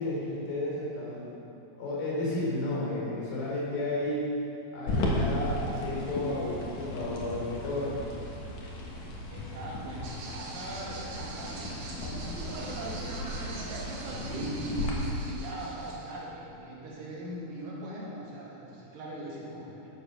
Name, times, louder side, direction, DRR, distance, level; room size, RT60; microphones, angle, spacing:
voice 1, 0.0-1.3 1.8-4.3 4.7-8.0 14.1-14.5, left 1 dB, 75° left, -5 dB, 5.2 m, -32 dB
sound 1, 4.9-14.9, left 1 dB, 60° left, 2.2 m, -35 dB
voice 2, 9.3-13.6 14.3-19.9, right 1 dB, 60° right, -6 dB, 3.8 m, -40 dB
sound 2, 10.0-16.2, right 3 dB, 80° right, 1.3 m, -42 dB
14.0 x 7.3 x 5.6 m, 2.9 s
omnidirectional pair, 4.6 m